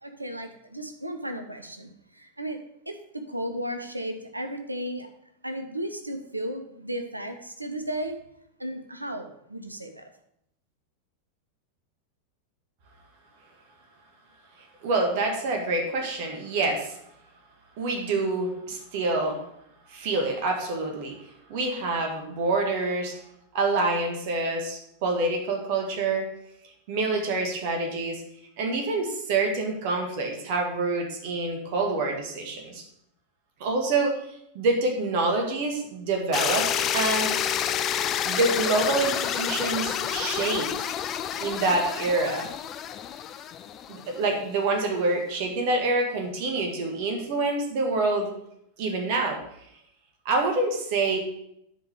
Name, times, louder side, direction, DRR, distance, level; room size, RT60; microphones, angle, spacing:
voice 1, 0.0-2.6 2.9-5.1 5.4-8.2 8.6-10.1, right 1 dB, 85° right, 6 dB, 1.0 m, -34 dB
voice 2, 14.8-17.0 17.8-19.4 19.9-21.1 21.5-23.1 23.5-26.3 26.9-28.2 28.6-32.8 33.6-34.2 34.5-37.4 38.3-40.9 41.4-42.5 43.9-48.3 48.8-49.4 50.3-51.2, right 3 dB, 50° right, 2 dB, 1.8 m, -26 dB
sound 1, 36.3-44.3, left 9 dB, 30° left, 0.5 m, -29 dB
10.0 x 5.1 x 5.2 m, 0.75 s
figure-of-eight pair, 90°, 0 cm